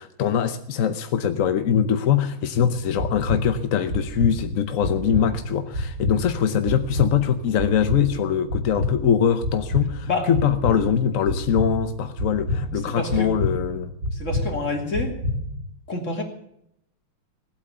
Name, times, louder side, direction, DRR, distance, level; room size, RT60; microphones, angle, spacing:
voice 1, 0.0-13.9, left 8 dB, 60° left, 9 dB, 0.9 m, -22 dB
sound 1, 2.5-15.7, left 1 dB, 70° right, 5.8 m, -29 dB
voice 2, 12.8-13.3 14.1-15.2 15.9-16.2, left 3 dB, 35° left, 1 dB, 3.2 m, -27 dB
18.5 x 8.6 x 8.1 m, 0.76 s
omnidirectional pair, 2.4 m